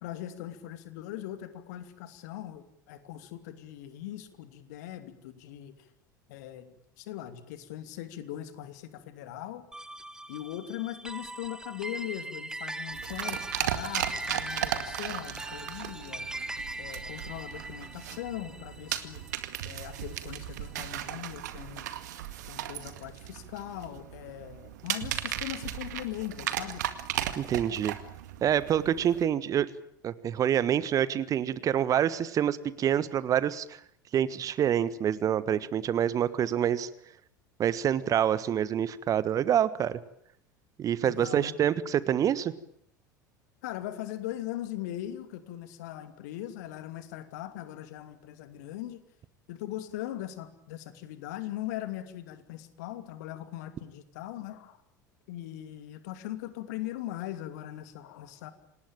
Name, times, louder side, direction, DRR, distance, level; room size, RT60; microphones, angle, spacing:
voice 1, 0.0-5.8 6.3-9.6 10.3-16.3 16.8-19.2 19.6-21.9 22.5-26.9 41.0-41.6 43.6-49.0 49.5-54.8 55.3-58.5, left 13 dB, 60° left, 10 dB, 2.7 m, -40 dB
sound 1, 9.7-20.3, right 2 dB, 5° right, 1.0 m, -40 dB
sound 2, 12.9-29.2, right 12 dB, 60° right, 2.1 m, -36 dB
voice 2, 27.4-27.9 28.4-29.7 30.0-33.8 34.1-36.9 37.6-40.0 40.8-42.5, right 9 dB, 35° right, 17 dB, 1.3 m, -27 dB
27.5 x 19.5 x 9.0 m, 0.71 s
figure-of-eight pair, 75°, 10 cm